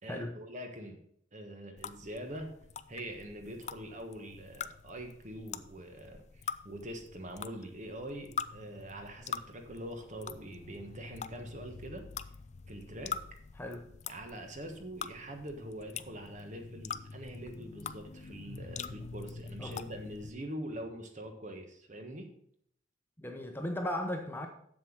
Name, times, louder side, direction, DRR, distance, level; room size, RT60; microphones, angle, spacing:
voice 1, 0.0-1.0 1.3-2.5 2.9-12.0 12.7-13.2 14.1-22.3, right 1 dB, 40° right, 5 dB, 1.3 m, -44 dB
sound 1, 1.8-20.3, left 6 dB, 35° left, 0.4 m, -44 dB
voice 2, 13.6-13.9 19.6-19.8 23.2-24.5, left 1 dB, 10° left, 4 dB, 1.0 m, -36 dB
7.7 x 7.1 x 6.2 m, 0.68 s
head